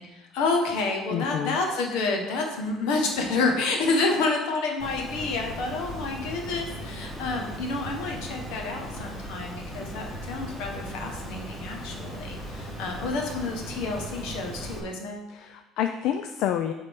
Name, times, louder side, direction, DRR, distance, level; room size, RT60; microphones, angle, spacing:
voice 1, 0.0-15.3, left 3 dB, 85° left, 2 dB, 1.4 m, -29 dB
voice 2, 1.1-1.6 15.3-16.7, left 10 dB, 65° left, 7 dB, 0.3 m, -28 dB
Water, 4.8-14.8, equal, 25° left, 1.8 m, -38 dB
10.5 x 3.9 x 3.7 m, 1.0 s
cardioid pair, 150°, 0 cm